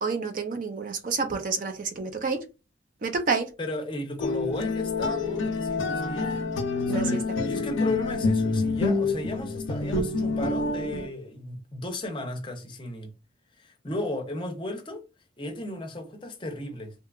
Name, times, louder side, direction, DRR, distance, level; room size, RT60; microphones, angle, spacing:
voice 1, 0.0-2.4 3.0-3.5 6.9-7.0 7.4-7.5, right 4 dB, 45° right, 0.4 m, -29 dB
voice 2, 3.6-6.5 6.9-13.1 13.6-15.0 15.4-16.9, left 2 dB, 25° left, 0.6 m, -35 dB
sound 1, 4.2-11.1, left 3 dB, 85° left, 0.5 m, -27 dB
2.8 x 2.3 x 2.3 m
head